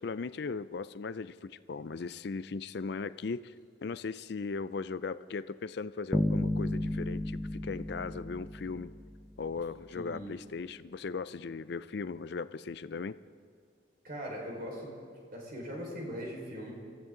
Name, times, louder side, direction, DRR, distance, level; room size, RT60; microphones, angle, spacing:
voice 1, 0.0-3.5 3.8-8.9 9.4-13.2, left 4 dB, 55° left, 15 dB, 0.4 m, -38 dB
Bass guitar, 6.1-9.2, left 1 dB, ahead, 0.5 m, -33 dB
voice 2, 9.9-10.3 14.0-14.9 15.3-16.7, equal, 50° right, -2 dB, 4.8 m, -40 dB
25.0 x 15.5 x 3.8 m, 2.3 s
head